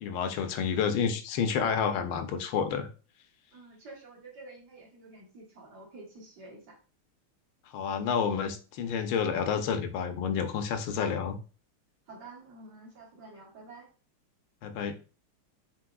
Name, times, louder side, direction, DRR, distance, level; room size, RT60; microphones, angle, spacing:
voice 1, 0.0-2.9 7.7-11.4 14.6-15.0, left 6 dB, 85° left, 7 dB, 1.5 m, -29 dB
voice 2, 3.5-6.8 12.1-13.9, right 2 dB, 55° right, -1 dB, 1.6 m, -49 dB
4.7 x 4.1 x 2.3 m, 0.36 s
omnidirectional pair, 2.3 m